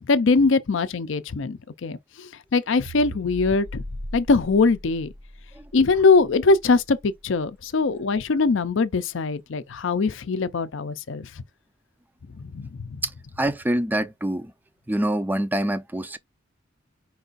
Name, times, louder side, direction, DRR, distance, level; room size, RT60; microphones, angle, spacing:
voice 1, 0.1-3.8 4.1-5.1 5.7-11.3 12.4-12.9, left 4 dB, 65° left, 0.5 m, -22 dB
sound 1, 2.8-7.3, equal, 85° right, 1.3 m, -39 dB
voice 2, 13.4-14.5 14.9-16.2, right 1 dB, 10° right, 0.4 m, -25 dB
4.7 x 2.5 x 4.0 m
head